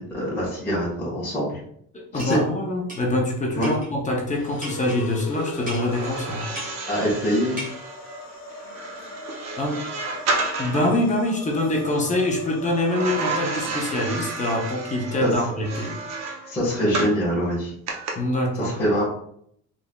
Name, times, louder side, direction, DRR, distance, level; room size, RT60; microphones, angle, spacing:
voice 1, 0.1-1.6 2.1-2.4 3.5-3.7 6.9-7.6 15.2-15.3 16.5-17.7 18.5-19.0, equal, 5° left, -10 dB, 1.3 m, -24 dB
voice 2, 1.9-6.4 9.6-9.8 10.6-16.0 18.2-18.8, left 1 dB, 25° left, 0 dB, 0.5 m, -24 dB
sound 1, 2.2-2.4 2.9-3.0 3.6-3.9 4.6-5.0 5.7-5.9 6.6-6.8 7.6-7.7, equal, 25° right, 1.2 m, -35 dB
sound 2, 4.3-14.5, left 3 dB, 85° left, 0.7 m, -39 dB
sound 3, 5.8-11.0 12.9-17.2 17.9-18.1, right 3 dB, 55° right, 0.7 m, -31 dB
3.8 x 3.2 x 2.2 m, 0.68 s
cardioid pair, 170°, 33 cm